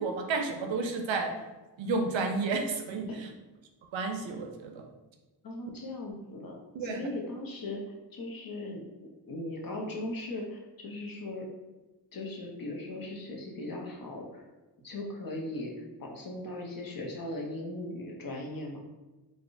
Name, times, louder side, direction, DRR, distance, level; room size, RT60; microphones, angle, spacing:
voice 1, 0.0-1.3 1.8-3.1 3.9-4.8 6.8-7.0, right 3 dB, 85° right, 4 dB, 0.6 m, -31 dB
voice 2, 5.4-7.8 8.1-11.5 12.1-14.4 14.8-18.8, left 1 dB, 50° left, -1 dB, 0.7 m, -38 dB
3.4 x 2.5 x 2.5 m, 1.1 s
wide cardioid pair, 95°, 44 cm